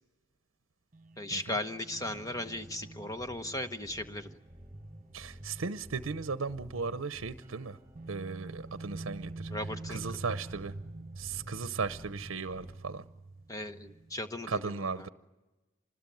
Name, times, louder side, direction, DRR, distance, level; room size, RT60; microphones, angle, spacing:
sound 1, 0.9-6.3 6.6-6.8 7.9-14.5, right 2 dB, 40° right, 0.8 m, -47 dB
voice 1, 1.2-4.4 9.5-10.0 13.5-15.1, left 1 dB, 15° left, 8 dB, 1.0 m, -37 dB
sound 2, 2.1-12.7, right 1 dB, 10° right, 3.6 m, -51 dB
voice 2, 5.1-7.8 8.1-9.5 9.9-10.7 11.2-13.0 14.5-15.1, right 4 dB, 80° right, 13 dB, 0.7 m, -36 dB
26.0 x 20.0 x 9.2 m, 1.1 s
head